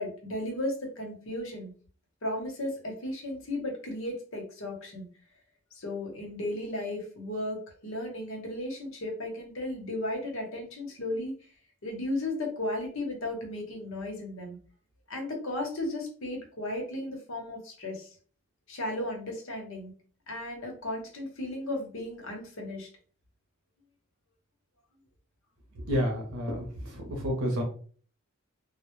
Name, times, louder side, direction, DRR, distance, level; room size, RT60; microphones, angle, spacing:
voice 1, 0.0-1.7 2.2-5.1 5.7-11.3 11.8-14.6 15.1-18.1 18.7-19.9 20.3-22.9, left 1 dB, 65° left, 1 dB, 0.8 m, -35 dB
voice 2, 25.8-27.6, equal, 80° right, 1 dB, 0.7 m, -30 dB
2.1 x 2.0 x 3.0 m, 0.43 s
head